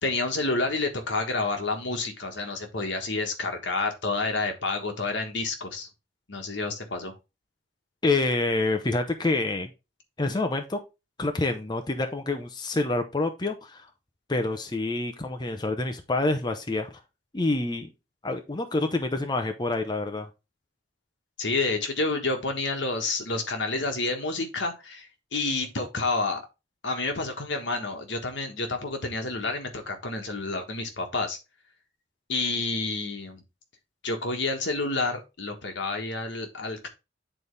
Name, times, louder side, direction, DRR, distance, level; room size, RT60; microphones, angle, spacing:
voice 1, 0.0-5.9 6.3-7.1 21.4-26.4 26.8-31.4 32.3-33.4 34.0-36.9, left 3 dB, 80° left, 4 dB, 1.5 m, -29 dB
voice 2, 8.0-9.7 10.2-10.8 11.2-13.9 14.3-17.0 17.3-17.9 18.2-20.3, left 2 dB, 25° left, 5 dB, 0.7 m, -27 dB
9.0 x 4.1 x 3.3 m, 0.26 s
head